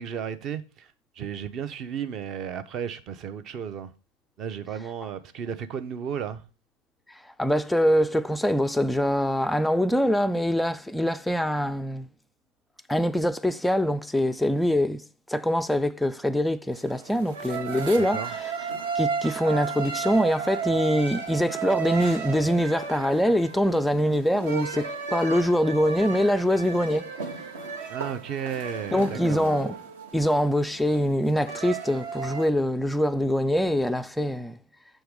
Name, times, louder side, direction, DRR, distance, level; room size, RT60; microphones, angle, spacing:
voice 1, 0.0-3.9 4.4-6.4 18.0-18.3 27.9-29.5, right 8 dB, 35° right, 0.7 m, -34 dB
voice 2, 7.4-12.1 12.9-15.0 15.3-18.5 19.0-27.1 28.9-29.8 30.1-34.6, equal, 5° left, 0.3 m, -24 dB
sound 1, 16.7-32.5, right 6 dB, 60° right, 1.1 m, -34 dB
6.4 x 4.5 x 5.1 m
figure-of-eight pair, 90°, 0 cm